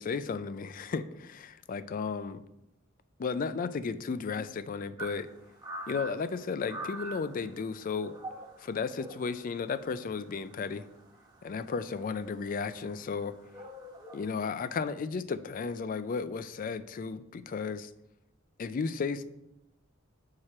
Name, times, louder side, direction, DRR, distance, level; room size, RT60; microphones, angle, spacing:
voice 1, 0.0-2.4 3.2-5.3 5.9-8.2 8.6-10.9 11.4-13.3 14.1-17.9 18.6-19.2, left 5 dB, 45° left, 13 dB, 0.3 m, -34 dB
sound 1, 5.0-14.8, right 1 dB, 20° right, 1.1 m, -46 dB
4.8 x 4.3 x 5.9 m, 0.87 s
head